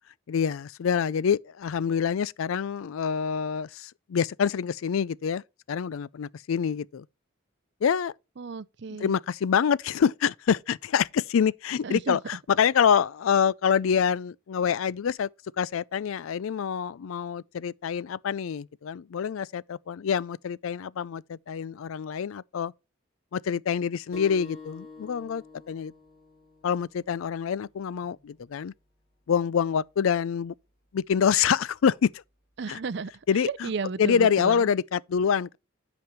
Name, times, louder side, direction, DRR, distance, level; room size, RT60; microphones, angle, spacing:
voice 1, 0.3-5.4 5.7-7.0 7.8-8.1 9.0-15.3 15.6-22.7 23.3-25.9 26.6-28.7 29.3-30.5 30.9-32.2 32.7-32.8 33.3-33.7 34.0-35.6, left 7 dB, 80° left, 0.4 m, -26 dB
voice 2, 8.4-9.2 11.8-12.2 32.6-34.7, right 4 dB, 55° right, 0.5 m, -34 dB
sound 1, 24.1-29.3, left 4 dB, 45° left, 3.7 m, -48 dB
10.5 x 5.2 x 4.4 m
head